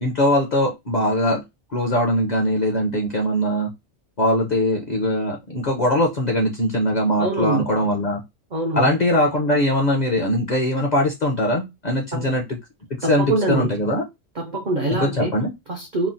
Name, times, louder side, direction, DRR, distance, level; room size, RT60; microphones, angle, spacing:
voice 1, 0.0-1.4 1.7-3.7 4.2-8.2 8.7-12.4 13.0-14.0 15.0-15.5, left 1 dB, 45° left, 0.6 m, -21 dB
voice 2, 7.2-7.7 8.5-9.0 12.1-12.3 13.0-13.7 14.4-15.3 15.7-16.1, right 2 dB, 55° right, 0.5 m, -24 dB
3.1 x 2.0 x 2.6 m
omnidirectional pair, 1.3 m